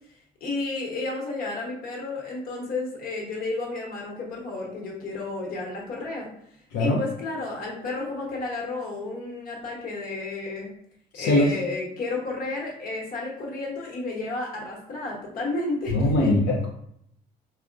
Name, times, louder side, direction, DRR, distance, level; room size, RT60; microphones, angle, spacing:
voice 1, 0.4-6.3 6.8-10.7 11.1-16.3, left 3 dB, 60° left, -2 dB, 1.0 m, -32 dB
voice 2, 11.1-11.5 15.9-16.7, left 1 dB, 85° left, -3 dB, 0.6 m, -21 dB
3.4 x 2.1 x 2.5 m, 0.70 s
cardioid pair, 110°, 17 cm